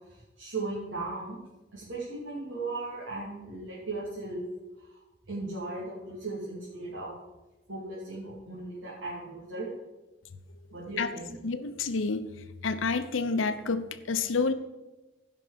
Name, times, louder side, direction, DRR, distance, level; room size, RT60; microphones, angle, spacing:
voice 1, 0.1-1.4 1.7-4.4 4.8-5.0 5.3-7.2 7.7-9.7 10.7-11.4, right 2 dB, 80° right, -7 dB, 2.9 m, -37 dB
voice 2, 11.4-12.3 12.6-14.5, left 4 dB, 80° left, 10 dB, 0.8 m, -28 dB
15.0 x 5.9 x 5.2 m, 1.1 s
head